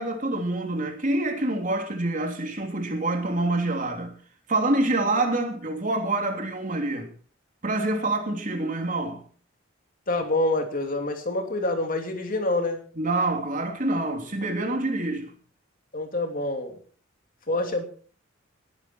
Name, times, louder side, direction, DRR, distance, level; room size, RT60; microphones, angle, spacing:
voice 1, 0.0-4.1 4.5-7.1 7.6-9.2 13.0-15.3, right 2 dB, 40° right, 3.2 m, -26 dB
voice 2, 10.1-12.8 15.9-16.8 17.5-17.8, left 2 dB, 45° left, 2.9 m, -26 dB
20.5 x 10.5 x 4.6 m
head